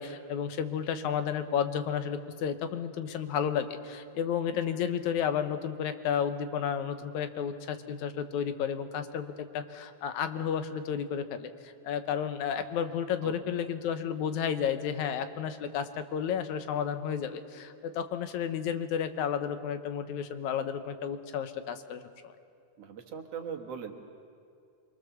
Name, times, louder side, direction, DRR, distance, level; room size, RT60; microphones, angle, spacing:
voice 1, 0.0-22.3, left 8 dB, 80° left, 9 dB, 2.4 m, -32 dB
voice 2, 22.8-23.9, right 7 dB, 60° right, 3 dB, 2.4 m, -40 dB
26.0 x 23.5 x 7.1 m, 2.5 s
omnidirectional pair, 3.3 m